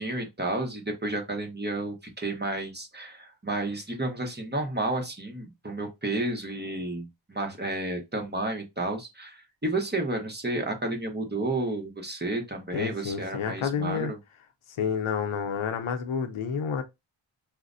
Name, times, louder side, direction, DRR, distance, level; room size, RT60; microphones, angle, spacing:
voice 1, 0.0-14.2, right 2 dB, 20° right, 0.9 m, -31 dB
voice 2, 12.7-14.1 14.8-16.8, left 6 dB, 90° left, 0.6 m, -29 dB
4.8 x 2.1 x 2.5 m
wide cardioid pair, 65°, 48 cm